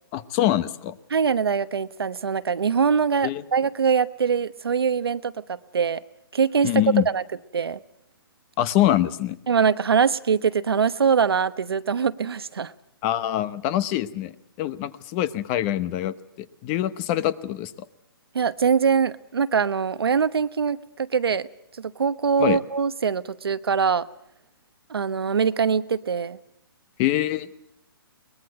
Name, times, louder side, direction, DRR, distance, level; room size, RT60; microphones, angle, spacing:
voice 1, 0.1-1.0 3.2-3.4 6.6-7.0 8.6-9.4 13.0-17.7 22.4-22.6 27.0-27.5, left 13 dB, 30° left, 16 dB, 1.0 m, -24 dB
voice 2, 1.1-6.0 6.3-7.2 7.5-7.8 9.5-12.7 18.3-21.5 21.8-24.1 24.9-26.4, right 6 dB, 90° right, 13 dB, 1.0 m, -23 dB
22.5 x 20.5 x 7.9 m, 0.78 s
hypercardioid pair, 150°, 12 cm